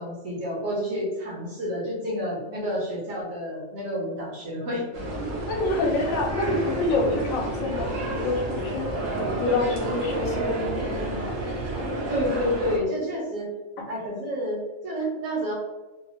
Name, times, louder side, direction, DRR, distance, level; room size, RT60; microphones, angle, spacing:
voice 1, 0.0-4.9 12.1-13.5 13.9-15.5, equal, 70° right, -5 dB, 1.4 m, -29 dB
sound 1, 4.9-12.8, right 1 dB, 50° right, 0.7 m, -30 dB
voice 2, 5.5-8.9 9.4-11.4 13.8-13.9, left 2 dB, 80° left, -1 dB, 1.0 m, -27 dB
3.0 x 2.0 x 2.9 m, 1.1 s
omnidirectional pair, 1.4 m